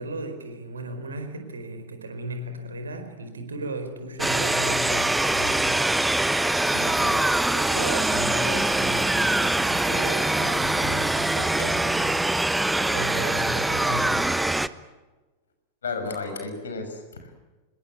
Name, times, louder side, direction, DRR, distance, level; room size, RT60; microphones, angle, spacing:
voice 1, 0.0-5.8 6.7-7.1 7.5-14.3, right 1 dB, 70° right, 7 dB, 4.7 m, -36 dB
sound 1, 4.2-14.7, right 2 dB, 5° right, 0.8 m, -23 dB
voice 2, 6.7-7.1 15.8-17.3, left 4 dB, 70° left, 7 dB, 5.9 m, -33 dB
26.5 x 21.5 x 8.2 m, 1.2 s
figure-of-eight pair, 90°, 0 cm